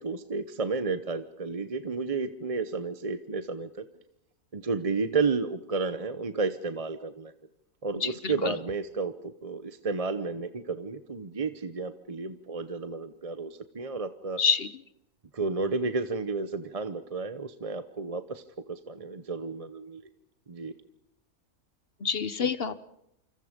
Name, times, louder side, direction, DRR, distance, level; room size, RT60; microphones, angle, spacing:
voice 1, 0.0-3.8 4.5-7.3 7.8-9.1 9.4-14.4 15.3-20.0 20.5-20.7, right 4 dB, 30° right, 11 dB, 0.8 m, -32 dB
voice 2, 8.0-8.5 14.4-14.7 22.0-22.8, left 5 dB, 45° left, 14 dB, 1.1 m, -28 dB
28.5 x 26.0 x 5.2 m, 0.81 s
omnidirectional pair, 1.6 m